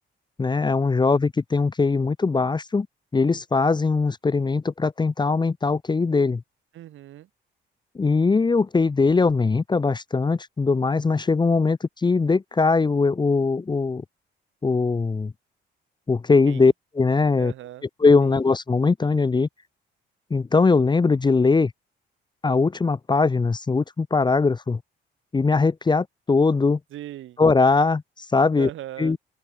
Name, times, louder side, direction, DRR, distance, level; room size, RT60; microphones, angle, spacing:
voice 1, 0.4-2.9 3.1-6.4 7.9-14.0 14.6-15.3 16.1-17.5 18.0-19.5 20.3-21.7 22.4-24.8 25.3-26.8 27.4-28.7 29.0-29.2, left 4 dB, 20° left, 0.8 m, -21 dB
voice 2, 6.7-7.3 16.5-16.7 17.4-17.9 18.2-18.4 26.9-27.4 28.6-29.2, right 13 dB, 80° right, 5.8 m, -38 dB
cardioid pair, 90°, 20 cm